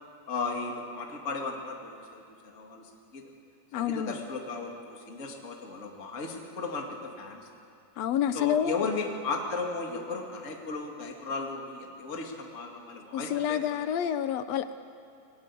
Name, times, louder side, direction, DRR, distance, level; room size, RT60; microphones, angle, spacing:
voice 1, 0.3-3.3 3.7-7.5 8.3-13.6, left 3 dB, 25° left, 1 dB, 2.4 m, -35 dB
voice 2, 3.7-4.2 8.0-8.9 13.1-14.7, left 9 dB, 75° left, 11 dB, 1.6 m, -28 dB
28.5 x 19.5 x 8.5 m, 2.4 s
omnidirectional pair, 3.7 m